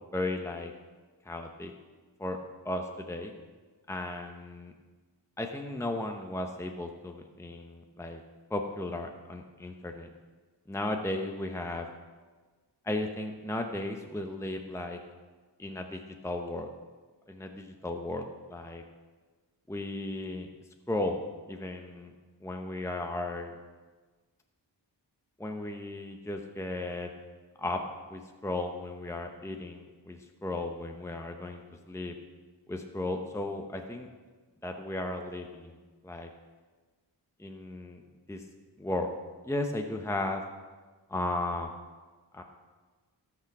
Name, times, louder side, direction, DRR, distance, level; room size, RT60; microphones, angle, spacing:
voice 1, 0.1-0.7 1.2-1.7 2.2-2.4 2.6-3.3 3.9-4.7 5.4-8.2 8.5-10.1 10.7-11.9 12.8-15.0 15.6-16.7 17.3-18.2 18.5-18.8 19.7-20.5 20.9-21.2 21.5-22.1 22.4-23.6 25.4-27.1 27.6-27.8 28.1-31.6 31.9-32.1 32.7-34.1 34.6-35.8 36.0-36.3 37.4-38.0 38.3-38.4 38.8-39.1 39.4-40.4 41.1-41.7 42.3-42.4, left 2 dB, 5° left, 3 dB, 0.9 m, -35 dB
16.5 x 6.1 x 6.0 m, 1.4 s
wide cardioid pair, 50°, 44 cm